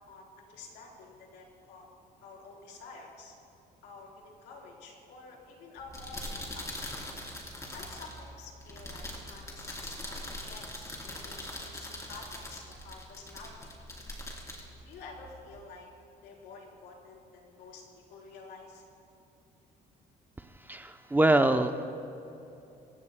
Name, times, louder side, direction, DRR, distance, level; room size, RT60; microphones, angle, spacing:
voice 1, 0.1-1.9 2.2-3.4 3.8-6.9 7.7-13.6 14.8-15.9 16.2-17.8 18.1-18.8, left 3 dB, 85° left, -1 dB, 3.9 m, -50 dB
sound 1, 5.8-15.6, left 1 dB, 20° left, 3.5 m, -42 dB
voice 2, 20.7-21.8, right 1 dB, 10° right, 7 dB, 0.7 m, -24 dB
27.5 x 16.0 x 2.2 m, 2.8 s
cardioid pair, 110°, 17 cm